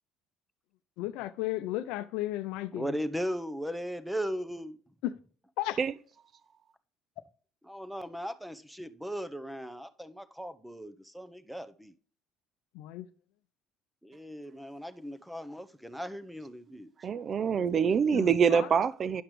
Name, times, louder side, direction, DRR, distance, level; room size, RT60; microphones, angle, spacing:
voice 1, 1.0-3.0 5.0-5.2 5.6-5.8 12.7-13.1 18.1-18.7, left 15 dB, 75° left, 0.6 m, -34 dB
voice 2, 2.7-4.8 7.6-11.9 14.0-16.9, equal, ahead, 0.9 m, -37 dB
voice 3, 17.0-19.2, right 6 dB, 45° right, 0.5 m, -25 dB
10.5 x 5.9 x 3.2 m
supercardioid pair, 80°, 0 cm